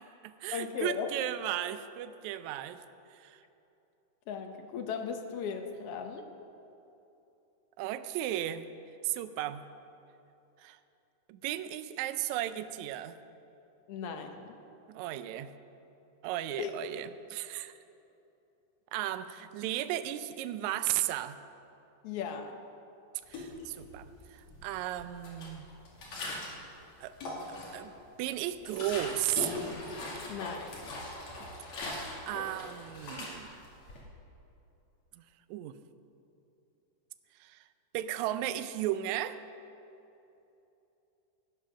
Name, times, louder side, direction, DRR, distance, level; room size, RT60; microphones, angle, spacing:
voice 1, 0.0-2.8 3.2-3.4 7.8-8.6 9.0-9.6 10.6-10.8 11.3-13.2 14.9-15.5 16.2-17.7 18.9-21.4 23.3-25.7 27.0-27.1 27.5-27.9 28.2-29.6 31.9-33.6 35.2-35.3 35.5-35.8 37.4-37.6 37.9-39.4, right 13 dB, 80° right, 11 dB, 1.7 m, -35 dB
voice 2, 0.5-1.1 4.3-6.2 13.9-14.5 16.6-16.7 22.0-22.6 30.2-30.8, left 6 dB, 85° left, 4 dB, 1.3 m, -37 dB
sound 1, 23.3-24.1 24.4-26.7 27.0-27.9 28.3-34.0, left 2 dB, 55° left, 3.4 m, -41 dB
17.0 x 9.3 x 6.2 m, 2.9 s
omnidirectional pair, 3.9 m